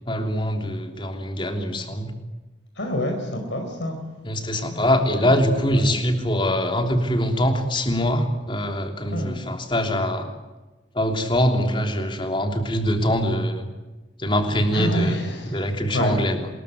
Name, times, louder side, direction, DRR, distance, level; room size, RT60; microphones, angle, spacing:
voice 1, 0.1-2.1 4.2-10.3 10.9-13.7 14.2-15.2 15.4-16.5, equal, 25° left, 5 dB, 3.2 m, -23 dB
voice 2, 2.8-4.0 5.2-5.3 5.7-5.9 9.0-9.4 14.7-15.6 15.9-16.2, equal, 75° left, 4 dB, 4.9 m, -27 dB
25.0 x 21.5 x 9.6 m, 1.2 s
head